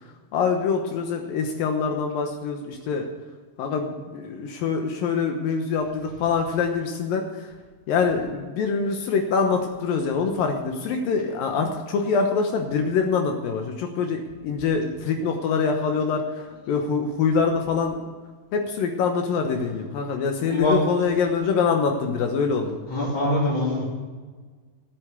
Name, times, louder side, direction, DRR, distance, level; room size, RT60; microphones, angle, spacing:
voice 1, 0.3-3.1 3.6-7.5 7.9-17.9 18.5-22.8, left 5 dB, 80° left, 3 dB, 2.8 m, -24 dB
voice 2, 20.4-20.8 22.9-23.9, left 2 dB, 35° left, -8 dB, 3.7 m, -23 dB
15.0 x 8.0 x 8.1 m, 1.4 s
omnidirectional pair, 4.0 m